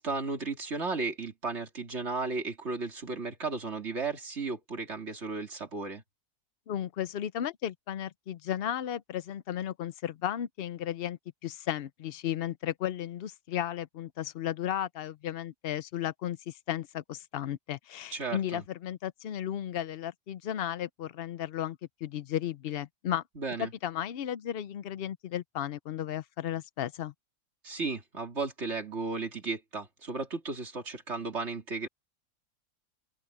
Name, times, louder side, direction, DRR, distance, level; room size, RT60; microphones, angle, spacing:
voice 1, 0.0-6.0 18.1-18.6 23.4-23.7 27.6-31.9, right 4 dB, 40° right, 3.1 m, -34 dB
voice 2, 6.7-23.2 23.6-27.1, left 10 dB, 85° left, 0.5 m, -34 dB
open air
omnidirectional pair, 1.7 m